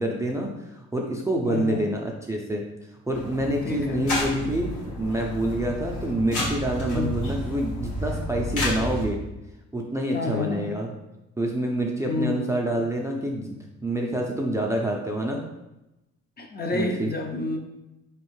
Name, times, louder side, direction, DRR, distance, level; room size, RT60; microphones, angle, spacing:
voice 1, 0.0-2.6 3.1-9.2 9.7-10.9 11.4-13.6 13.8-15.4 16.7-17.1, right 1 dB, 10° right, 0 dB, 0.5 m, -27 dB
voice 2, 1.5-1.8 3.6-4.1 6.9-7.1 10.1-10.7 12.0-12.9 16.4-17.6, left 3 dB, 30° left, 2 dB, 0.7 m, -29 dB
sound 1, 3.1-9.1, left 1 dB, 75° left, 1.4 m, -31 dB
4.3 x 3.1 x 3.1 m, 0.95 s
cardioid pair, 90°, 30 cm